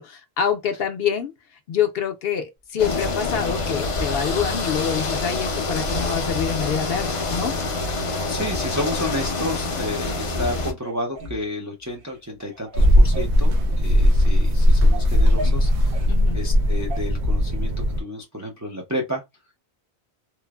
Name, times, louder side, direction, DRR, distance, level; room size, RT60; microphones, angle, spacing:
voice 1, 0.0-1.3 1.7-7.5 16.1-16.4, left 8 dB, 65° left, 0.7 m, -26 dB
sound 1, 2.8-10.7, left 3 dB, 45° left, 0.4 m, -26 dB
sound 2, 2.8-3.4 3.9-4.9 5.3-5.5 5.8-6.8 7.3-7.4 7.9-9.1 9.7-9.8 10.1-10.5 10.8-11.4 11.9-12.2 12.4-14.2 14.6-16.1 16.9-17.0, right 1 dB, 60° right, 0.8 m, -36 dB
voice 2, 8.3-17.7 18.0-19.2, left 1 dB, 25° right, 0.4 m, -31 dB
sound 3, 12.8-18.0, left 1 dB, 85° right, 0.9 m, -18 dB
3.1 x 2.0 x 2.2 m
omnidirectional pair, 1.1 m